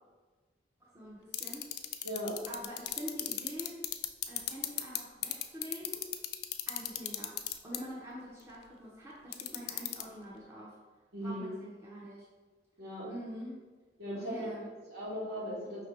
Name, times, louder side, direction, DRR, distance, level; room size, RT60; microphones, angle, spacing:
voice 1, 0.8-2.1 2.5-3.8 4.3-6.1 6.7-10.8 11.2-12.3 13.1-13.6 14.1-14.7, equal, 15° right, -6 dB, 0.6 m, -45 dB
sound 1, 1.3-5.0 5.2-7.8 9.3-10.0, left 16 dB, 60° left, 0.3 m, -32 dB
voice 2, 2.0-2.3 11.1-11.5 12.8-13.1 14.0-14.5 14.9-15.9, equal, 65° right, -5 dB, 1.3 m, -38 dB
5.0 x 2.7 x 3.1 m, 1.4 s
head